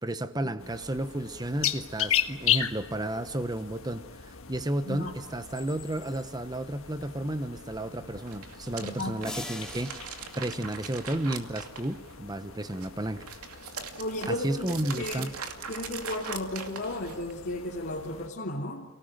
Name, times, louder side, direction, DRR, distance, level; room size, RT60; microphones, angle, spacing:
voice 1, 0.0-13.3 14.3-15.3, right 1 dB, 20° right, 11 dB, 1.0 m, -32 dB
sound 1, 0.6-18.3, left 10 dB, 65° left, 1.6 m, -37 dB
sound 2, 8.2-12.3 12.7-17.3, right 6 dB, 85° right, 2.5 m, -41 dB
voice 2, 8.8-9.2 14.0-15.3 15.7-18.8, left 1 dB, 45° left, -3 dB, 3.2 m, -34 dB
sound 3, 9.2-11.7, left 1 dB, 5° left, 2.4 m, -43 dB
30.0 x 19.0 x 9.1 m, 1.0 s
head